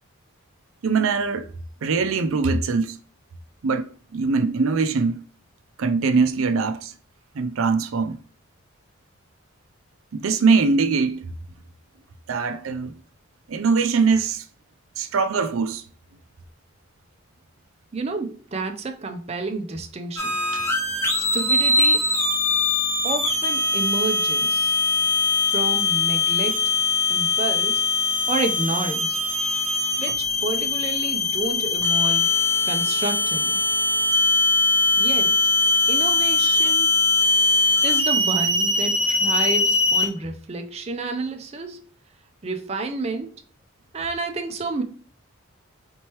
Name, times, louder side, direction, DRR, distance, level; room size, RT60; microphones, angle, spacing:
voice 1, 0.8-1.5 1.8-3.0 3.6-3.9 4.1-5.2 5.8-6.9 7.3-8.2 10.1-11.2 12.3-12.9 13.5-14.4 15.0-15.8 20.5-20.6, right 4 dB, 85° right, 0.5 m, -22 dB
voice 2, 17.9-20.4 21.2-22.1 23.0-24.8 25.5-26.7 27.1-27.9 28.3-29.2 30.0-32.3 32.7-33.6 35.0-35.4 35.9-36.9 37.8-41.8 42.4-43.3 43.9-44.8, right 3 dB, 30° right, 0.4 m, -30 dB
sound 1, 20.2-40.1, left 3 dB, 10° left, 0.7 m, -21 dB
4.3 x 3.1 x 2.9 m
head